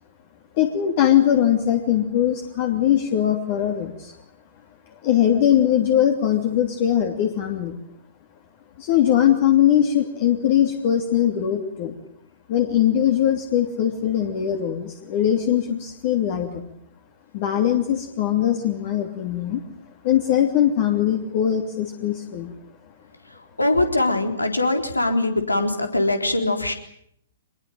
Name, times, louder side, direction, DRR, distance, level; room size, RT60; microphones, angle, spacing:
voice 1, 0.6-4.1 5.0-7.7 8.8-11.9 12.5-16.6 17.3-19.6 20.0-22.5, left 10 dB, 40° left, 3 dB, 3.0 m, -21 dB
voice 2, 23.3-26.7, left 2 dB, 85° left, 6 dB, 4.0 m, -22 dB
25.5 x 22.0 x 9.1 m, 0.73 s
figure-of-eight pair, 115°, 0 cm